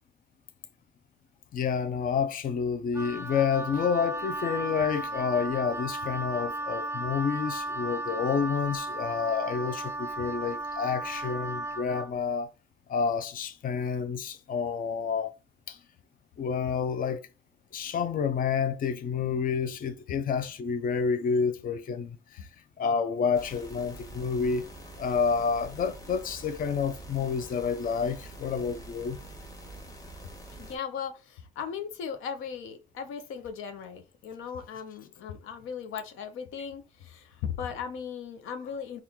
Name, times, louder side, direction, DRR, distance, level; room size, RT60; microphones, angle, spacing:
voice 1, 1.5-12.5 12.9-15.3 15.7-15.8 16.4-17.2 17.7-22.5 22.8-24.7 25.0-29.2, left 6 dB, 45° left, 0.5 m, -29 dB
Wind instrument woodwind instrument, 2.9-12.1, right 2 dB, 15° right, 0.4 m, -35 dB
sound 1, 23.3-30.8, right 1 dB, 15° left, 1.1 m, -46 dB
voice 2, 30.6-39.0, left 7 dB, 90° left, 0.7 m, -37 dB
4.4 x 2.4 x 3.5 m
cardioid pair, 90°, 20 cm